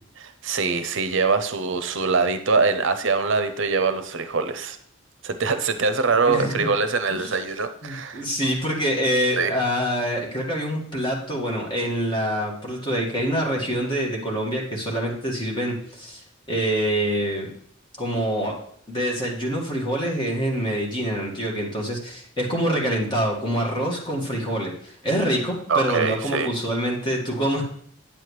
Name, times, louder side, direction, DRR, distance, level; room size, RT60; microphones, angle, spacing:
voice 1, 0.2-4.8 5.2-8.2 9.4-9.5 25.7-26.5, right 4 dB, 65° right, 10 dB, 0.6 m, -23 dB
voice 2, 6.3-6.7 7.1-7.3 7.8-16.2 16.5-17.5 18.0-18.5 18.9-27.6, equal, 25° left, -2 dB, 1.8 m, -25 dB
8.8 x 7.7 x 3.2 m, 0.63 s
head